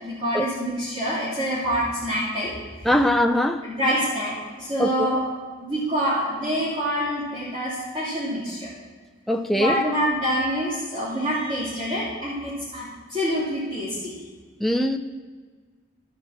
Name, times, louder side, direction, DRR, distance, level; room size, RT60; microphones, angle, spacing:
voice 1, 0.0-2.5 3.6-5.2 5.6-8.7 9.5-14.1, equal, 30° right, -11 dB, 3.1 m, -26 dB
voice 2, 2.9-3.6 4.8-5.2 9.3-9.8 14.6-15.0, left 1 dB, ahead, 3 dB, 0.3 m, -21 dB
13.0 x 6.1 x 7.4 m, 1.5 s
head